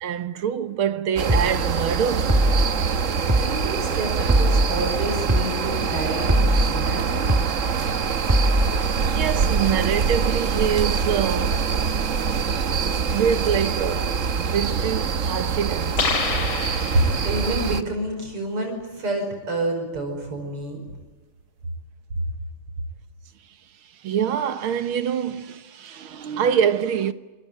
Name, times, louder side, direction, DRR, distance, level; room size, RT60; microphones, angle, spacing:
voice 1, 0.0-2.4 9.0-11.7 13.1-16.0 16.8-16.9 24.0-27.1, right 8 dB, 70° right, 2.0 m, -25 dB
sound 1, 1.2-17.8, right 6 dB, 50° right, 1.1 m, -24 dB
sound 2, 1.3-1.5 2.3-2.7 3.3-3.5 4.3-4.7 5.3-5.5 6.3-6.7 7.3-7.5 8.3-8.7, right 1 dB, 10° right, 0.9 m, -19 dB
voice 2, 3.3-7.2 17.2-20.8, right 2 dB, 90° right, 6.2 m, -29 dB
sound 3, 16.0-17.5, left 5 dB, 90° left, 3.6 m, -27 dB
27.0 x 24.0 x 9.0 m
omnidirectional pair, 2.4 m